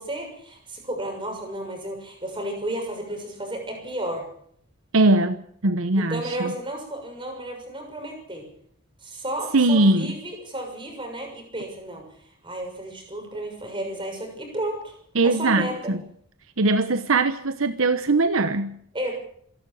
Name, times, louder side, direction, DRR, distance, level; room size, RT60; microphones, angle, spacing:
voice 1, 0.0-4.3 6.0-8.4 9.0-12.0 12.4-14.9 15.2-15.9 18.9-19.1, right 1 dB, 20° right, 3 dB, 6.6 m, -32 dB
voice 2, 4.9-5.4 5.6-6.5 9.5-10.1 15.1-16.0 16.6-18.8, right 2 dB, 70° right, 10 dB, 1.0 m, -21 dB
26.5 x 12.0 x 8.6 m, 0.66 s
head